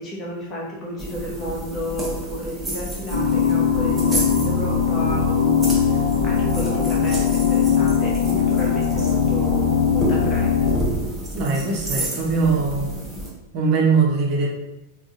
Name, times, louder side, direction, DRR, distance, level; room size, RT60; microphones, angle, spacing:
voice 1, 0.0-10.8, left 1 dB, 25° left, -4 dB, 1.0 m, -32 dB
sound 1, 1.0-13.3, right 1 dB, 10° right, 0.8 m, -30 dB
sound 2, 3.1-10.8, left 7 dB, 85° left, 0.6 m, -20 dB
voice 2, 11.3-12.9 13.5-14.5, right 4 dB, 45° right, -2 dB, 0.7 m, -21 dB
3.6 x 2.4 x 2.6 m, 0.95 s
figure-of-eight pair, 90°, 0 cm